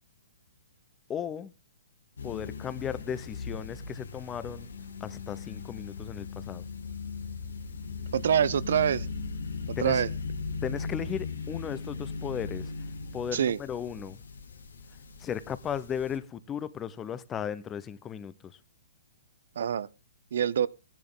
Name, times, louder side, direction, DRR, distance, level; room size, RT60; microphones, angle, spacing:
voice 1, 1.1-1.5 2.2-4.7 5.0-6.6 9.8-10.0 10.6-12.7 13.1-14.2 15.2-18.3, left 8 dB, 20° left, 0.8 m, -36 dB
sound 1, 2.2-16.2, left 4 dB, 75° left, 2.0 m, -38 dB
voice 2, 8.1-9.1 9.7-10.1 13.3-13.6 19.6-19.9 20.3-20.7, right 8 dB, 65° right, 0.5 m, -25 dB
16.0 x 10.5 x 3.8 m
hypercardioid pair, 125°, 0 cm